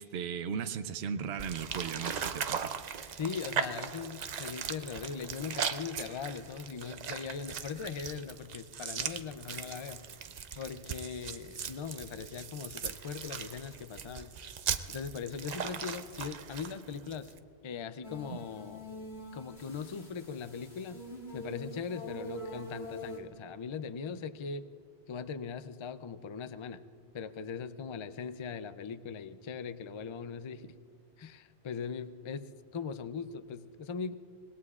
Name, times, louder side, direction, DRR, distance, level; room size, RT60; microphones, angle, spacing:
voice 1, 0.0-2.7 18.3-18.4, right 6 dB, 75° right, 9 dB, 0.9 m, -37 dB
sound 1, 1.4-17.4, right 7 dB, 50° right, 0.6 m, -39 dB
voice 2, 3.2-10.1 10.6-14.3 14.9-17.3 17.6-18.9 19.3-21.0 21.3-24.6 25.1-26.8 27.1-30.7 31.2-32.5 32.7-34.1, left 6 dB, 50° left, 12 dB, 0.3 m, -40 dB
sound 2, 18.0-23.2, equal, 70° left, 2.8 m, -45 dB
25.5 x 20.0 x 2.4 m, 2.2 s
omnidirectional pair, 1.1 m